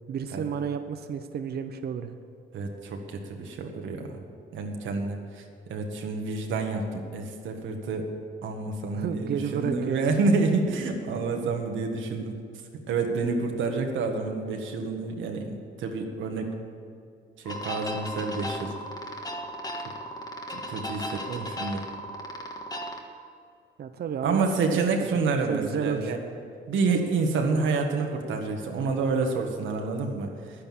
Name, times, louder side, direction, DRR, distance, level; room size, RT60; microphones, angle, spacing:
voice 1, 0.1-2.2 8.9-10.1 11.4-11.5 21.3-21.5 23.8-24.5 25.3-26.1, right 7 dB, 55° right, 9 dB, 0.7 m, -31 dB
voice 2, 2.5-4.2 4.5-5.4 5.7-8.1 8.4-12.4 12.9-16.5 17.4-18.7 20.5-21.8 24.2-26.2 26.7-30.3, right 4 dB, 75° right, 3 dB, 1.6 m, -28 dB
sound 1, 17.4-23.0, equal, 20° left, 1.5 m, -36 dB
10.5 x 10.0 x 7.4 m, 2.4 s
cardioid pair, 90°, 20 cm